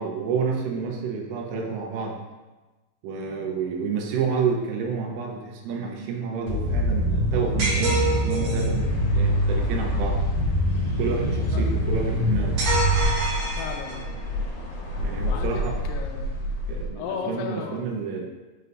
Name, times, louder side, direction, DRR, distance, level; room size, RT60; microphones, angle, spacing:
voice 1, 0.0-2.2 3.0-8.9 9.1-10.2 11.0-12.6 15.0-15.8 16.7-18.3, right 5 dB, 80° right, 1 dB, 3.1 m, -29 dB
sound 1, 6.5-13.0, equal, 45° right, 2.0 m, -24 dB
sound 2, 7.6-8.8 12.6-14.2, right 3 dB, 65° right, 2.3 m, -27 dB
sound 3, 8.7-16.9, left 1 dB, 70° left, 2.3 m, -32 dB
voice 2, 13.6-14.1 15.2-16.4 16.9-18.0, left 6 dB, 90° left, 2 dB, 2.7 m, -35 dB
7.8 x 5.4 x 2.7 m, 1.2 s
omnidirectional pair, 5.9 m